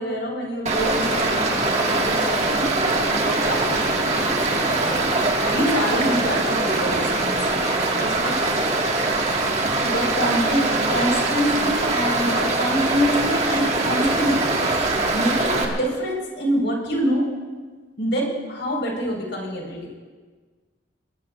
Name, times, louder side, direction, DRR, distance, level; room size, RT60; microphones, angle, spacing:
voice 1, 0.0-8.4 9.8-14.5 15.1-17.3 18.0-19.9, equal, 75° left, 0 dB, 4.6 m, -26 dB
Stream, 0.7-15.7, right 2 dB, 35° right, 1.8 m, -22 dB
23.0 x 20.5 x 2.5 m, 1.4 s
head